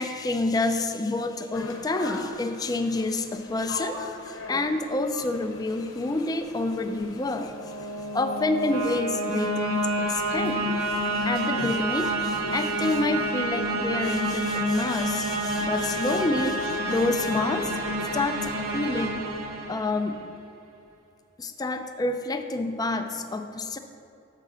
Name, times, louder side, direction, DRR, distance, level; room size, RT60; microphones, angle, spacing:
voice 1, 0.0-7.5 8.1-10.6 11.2-17.7 18.1-19.3 19.7-20.2 21.4-23.8, left 2 dB, 20° left, 7 dB, 0.4 m, -28 dB
sound 1, 1.5-13.3, left 2 dB, 85° left, 0.9 m, -42 dB
sound 2, 7.3-20.3, right 1 dB, 80° right, 0.8 m, -29 dB
6.6 x 4.9 x 6.1 m, 2.6 s
head